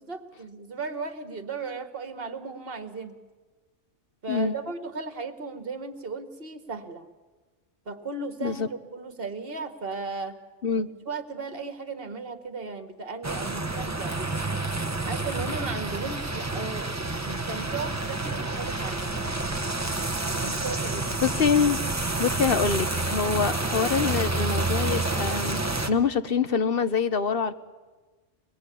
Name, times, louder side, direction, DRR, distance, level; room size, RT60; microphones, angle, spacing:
voice 1, 0.0-3.2 4.2-7.1 7.9-10.4 10.8-14.3 15.1-19.2 20.4-21.1, right 4 dB, 50° right, 8 dB, 1.9 m, -36 dB
sound 1, 13.2-25.9, right 2 dB, 15° right, 1.0 m, -29 dB
voice 2, 21.2-21.8 22.1-27.5, left 6 dB, 50° left, 12 dB, 1.1 m, -25 dB
26.0 x 20.0 x 8.5 m, 1.3 s
omnidirectional pair, 1.2 m